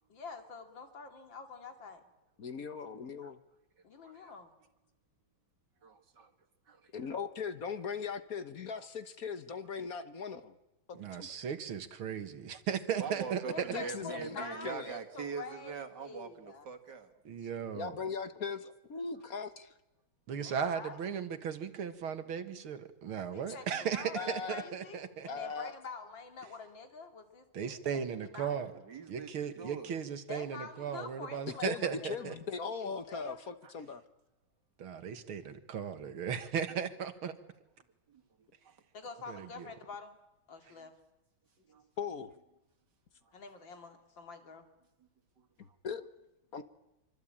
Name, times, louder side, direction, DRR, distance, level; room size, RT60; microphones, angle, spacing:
voice 1, 0.1-2.0 3.8-4.5 13.5-16.7 20.4-21.0 23.3-28.6 30.3-33.4 38.9-40.2 40.5-40.9 43.3-44.7, left 4 dB, 65° left, 5 dB, 3.3 m, -47 dB
voice 2, 2.4-3.4 6.9-10.5 10.9-11.3 13.7-14.9 17.7-19.7 24.1-24.7 25.3-25.7 31.6-34.0 42.0-42.3 45.8-46.0 46.5-46.6, left 5 dB, 50° left, 10 dB, 1.5 m, -39 dB
voice 3, 3.9-4.3 5.8-6.3 6.7-6.9 8.8-8.9 13.0-17.1 28.6-29.9 33.6-33.7 38.1-38.2 38.6-38.7 40.8-40.9 41.6-41.9 45.4-45.5, right 5 dB, 55° right, 7 dB, 2.6 m, -43 dB
voice 4, 10.9-13.8 17.3-18.0 20.3-25.3 27.5-28.7 29.1-32.3 34.8-37.3 39.3-39.7, right 7 dB, 90° right, 9 dB, 2.5 m, -36 dB
25.5 x 24.5 x 8.8 m, 0.95 s
omnidirectional pair, 2.2 m